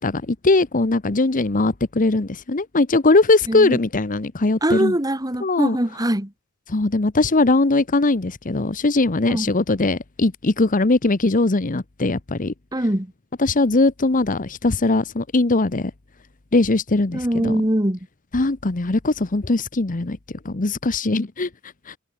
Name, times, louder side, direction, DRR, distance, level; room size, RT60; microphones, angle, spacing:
voice 1, 0.0-4.9 5.4-5.8 6.7-12.5 13.4-15.9 16.5-17.6 18.3-20.2 20.4-21.5 21.9-22.0, left 2 dB, 40° left, 1.0 m, -20 dB
voice 2, 3.5-3.8 4.6-6.3 9.3-9.5 12.7-13.1 17.1-18.0, right 1 dB, 20° right, 2.3 m, -22 dB
head